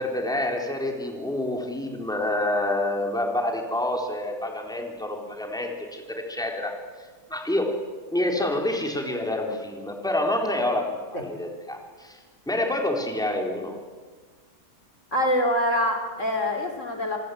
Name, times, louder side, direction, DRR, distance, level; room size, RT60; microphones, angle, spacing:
voice 1, 0.0-6.7 7.3-7.7 8.1-12.2 12.5-13.7, left 1 dB, ahead, 2 dB, 3.9 m, -27 dB
voice 2, 15.1-17.2, left 1 dB, 45° left, 4 dB, 3.4 m, -25 dB
27.5 x 25.0 x 8.4 m, 1.4 s
omnidirectional pair, 1.8 m